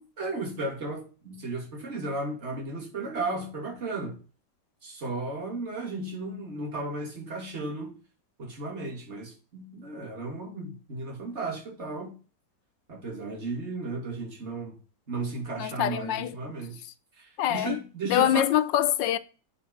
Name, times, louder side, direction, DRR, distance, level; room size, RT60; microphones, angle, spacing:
voice 1, 0.2-4.2 4.8-7.9 8.4-12.2 12.9-14.8 15.1-16.8 17.2-18.5, right 2 dB, 35° right, 2.6 m, -34 dB
voice 2, 15.6-16.3 17.4-17.8 18.1-19.2, left 12 dB, 75° left, 1.2 m, -24 dB
8.4 x 4.3 x 6.4 m
omnidirectional pair, 2.1 m